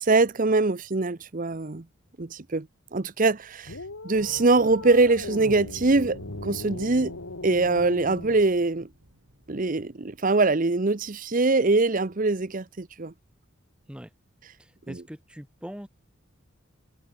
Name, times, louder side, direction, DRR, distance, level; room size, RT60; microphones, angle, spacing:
voice 1, 0.0-1.8 2.2-2.7 2.9-3.8 4.0-7.1 7.4-8.9 9.5-13.1 14.9-15.0, right 3 dB, 40° right, 0.8 m, -23 dB
sound 1, 3.7-8.5, left 2 dB, 85° left, 1.9 m, -39 dB
sound 2, 4.1-10.3, right 1 dB, 70° right, 4.4 m, -50 dB
voice 2, 14.6-15.9, equal, 5° right, 1.8 m, -41 dB
head